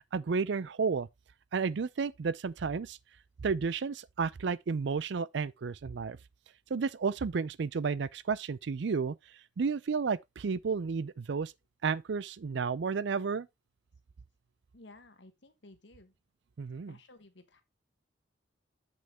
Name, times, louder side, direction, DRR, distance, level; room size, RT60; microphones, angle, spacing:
voice 1, 0.1-1.1 1.5-3.0 3.4-6.2 6.7-9.2 9.6-11.5 11.8-13.5 16.6-16.9, right 5 dB, 65° right, 0.4 m, -32 dB
voice 2, 14.7-16.1 16.9-17.6, left 2 dB, 65° left, 1.4 m, -55 dB
7.9 x 6.3 x 3.3 m
head